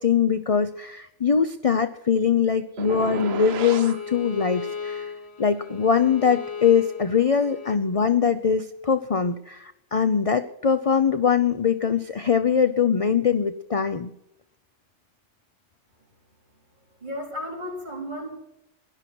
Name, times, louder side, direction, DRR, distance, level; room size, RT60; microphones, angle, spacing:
voice 1, 0.0-5.0 5.4-14.1, left 7 dB, 40° left, 9 dB, 0.6 m, -22 dB
Bowed string instrument, 2.8-7.8, left 6 dB, 55° left, 1.8 m, -37 dB
sound 1, 2.8-4.0, right 8 dB, 60° right, 0.9 m, -33 dB
voice 2, 16.9-18.3, equal, 35° right, 0 dB, 4.1 m, -34 dB
17.5 x 11.5 x 6.0 m, 0.85 s
omnidirectional pair, 1.3 m